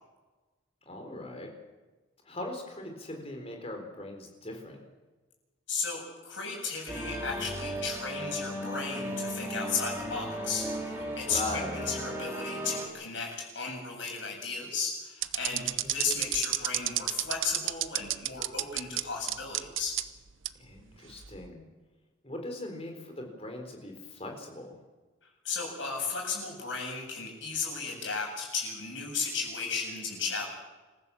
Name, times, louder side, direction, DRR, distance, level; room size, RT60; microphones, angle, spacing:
voice 1, 0.9-1.5 2.2-4.8 11.2-11.8 15.5-16.0 20.6-21.6 22.2-24.8, left 2 dB, 30° left, 3 dB, 4.2 m, -40 dB
voice 2, 5.7-20.0 25.4-30.5, left 4 dB, 70° left, 0 dB, 7.8 m, -35 dB
sound 1, 6.9-12.9, equal, 15° right, 3.4 m, -36 dB
sound 2, 15.2-19.0 19.3-20.0 20.4-20.5 21.2-21.5, right 14 dB, 85° right, 0.8 m, -29 dB
26.5 x 15.0 x 7.3 m, 1.2 s
head